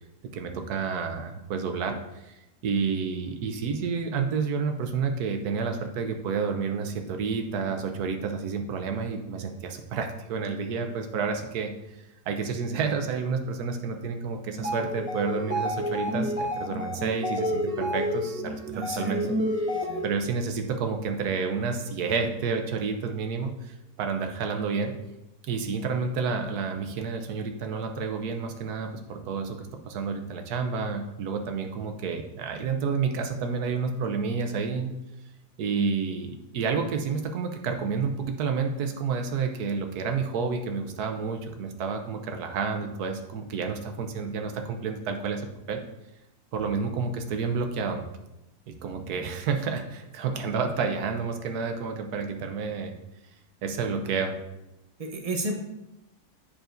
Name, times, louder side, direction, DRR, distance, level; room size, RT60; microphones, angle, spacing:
voice 1, 0.3-2.0 2.2-2.4 2.6-19.2 19.6-24.9 25.4-35.0 35.6-45.8 46.5-48.0 48.7-52.9 53.6-54.4, right 5 dB, 80° right, 5 dB, 1.2 m, -30 dB
sound 1, 14.5-20.3, equal, 5° right, 1.8 m, -30 dB
voice 2, 18.7-19.2 19.7-20.0 55.0-55.5, right 1 dB, 35° right, 2 dB, 0.6 m, -32 dB
10.0 x 4.8 x 2.6 m, 0.91 s
omnidirectional pair, 1.6 m